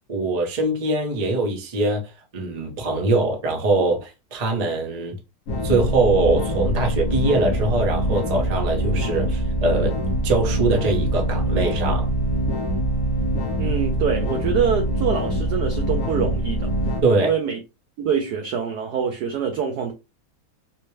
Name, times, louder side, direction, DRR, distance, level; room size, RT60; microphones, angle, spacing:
voice 1, 0.1-2.0 2.3-5.2 5.6-9.9 10.2-12.1 17.0-17.3, right 2 dB, 40° right, 0.5 m, -22 dB
sound 1, 5.5-17.0, right 1 dB, 60° left, 1.2 m, -24 dB
voice 2, 13.6-16.7 17.2-17.6 18.0-19.9, right 7 dB, 75° right, 0.9 m, -25 dB
4.2 x 2.1 x 3.1 m
omnidirectional pair, 2.3 m